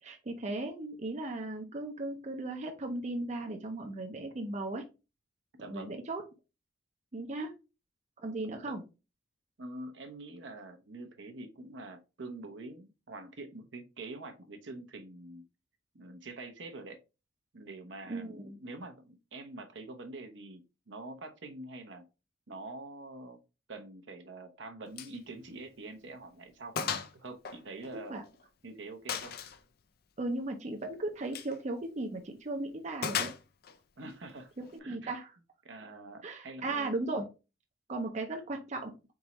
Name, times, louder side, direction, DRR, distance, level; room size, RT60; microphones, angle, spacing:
voice 1, 0.0-4.9 5.7-6.3 7.1-7.5 8.2-8.8 18.1-18.6 27.9-28.2 30.2-33.3 34.6-35.3 36.2-37.3 37.9-38.9, right 2 dB, 40° right, 3 dB, 0.6 m, -36 dB
voice 2, 5.6-6.0 8.6-8.7 9.6-15.4 15.9-17.0 17.5-22.0 22.5-23.4 23.7-26.8 27.1-28.2 28.6-29.3 34.0-34.5 34.8-35.1 35.6-37.0, right 2 dB, 75° right, 5 dB, 0.8 m, -45 dB
Gunshot gunfire, 25.0-25.2 25.5-25.6 26.1-26.2 26.8-27.1 27.4-28.4 29.1-29.6 31.2-31.5 33.0-33.8, left 7 dB, 55° left, 0.5 m, -35 dB
4.1 x 3.5 x 2.9 m, 0.29 s
head